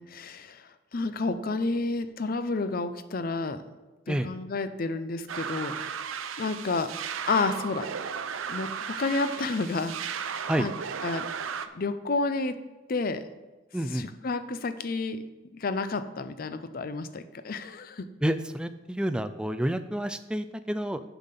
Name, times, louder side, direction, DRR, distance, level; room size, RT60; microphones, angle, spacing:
voice 1, 0.0-3.6 4.1-5.8 6.4-6.9 7.3-7.9 8.5-10.7 11.0-11.3 11.7-12.6 12.9-13.3 13.9-15.2 15.5-18.1, left 3 dB, 45° left, 11 dB, 0.5 m, -30 dB
sound 1, 5.3-11.7, right 7 dB, 80° right, 0.5 m, -35 dB
voice 2, 13.7-14.1 18.2-21.0, right 1 dB, 5° right, 10 dB, 0.3 m, -29 dB
7.0 x 5.7 x 6.8 m, 1.2 s
head